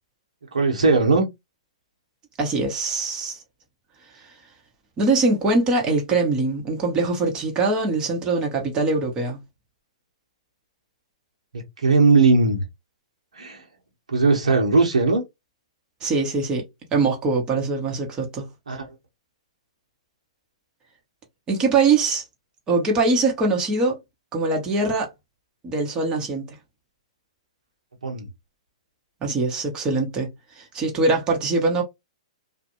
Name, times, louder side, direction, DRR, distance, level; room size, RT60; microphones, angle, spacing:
voice 1, 0.5-1.3 11.8-12.6 13.4-13.6 14.1-15.2 18.7-18.9 28.0-28.2, right 3 dB, 85° right, 1.0 m, -18 dB
voice 2, 2.4-3.4 5.0-9.4 16.0-18.5 21.5-22.2 22.7-24.0 24.3-25.1 25.6-26.5 29.2-30.3 30.6-31.8, right 3 dB, 25° right, 0.9 m, -22 dB
2.5 x 2.2 x 2.9 m
hypercardioid pair, 120°, 4 cm